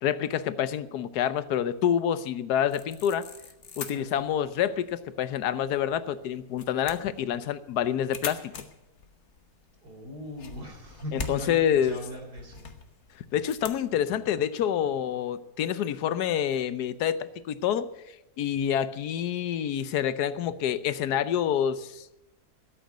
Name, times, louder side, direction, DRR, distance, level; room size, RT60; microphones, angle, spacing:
voice 1, 0.0-3.3 3.8-8.6 11.1-12.0 13.3-17.9 18.4-22.1, left 9 dB, 85° left, 14 dB, 1.3 m, -27 dB
sound 1, 2.7-13.8, left 5 dB, 50° left, 1.4 m, -44 dB
voice 2, 3.8-4.3 9.8-12.7, left 1 dB, 85° right, 2 dB, 4.0 m, -40 dB
13.0 x 8.5 x 9.1 m, 0.95 s
omnidirectional pair, 1.7 m